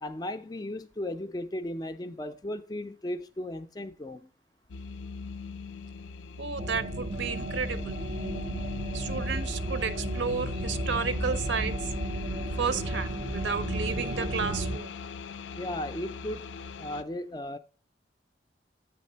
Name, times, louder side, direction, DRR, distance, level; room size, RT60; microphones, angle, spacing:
voice 1, 0.0-4.3 15.6-17.6, left 1 dB, 20° left, 0.3 m, -36 dB
sound 1, 4.7-17.0, left 5 dB, 85° left, 0.4 m, -40 dB
voice 2, 6.4-7.9 8.9-11.7 12.6-14.9, right 5 dB, 80° right, 0.6 m, -32 dB
sound 2, 6.6-14.8, right 1 dB, 40° right, 0.4 m, -33 dB
8.2 x 3.3 x 5.5 m
head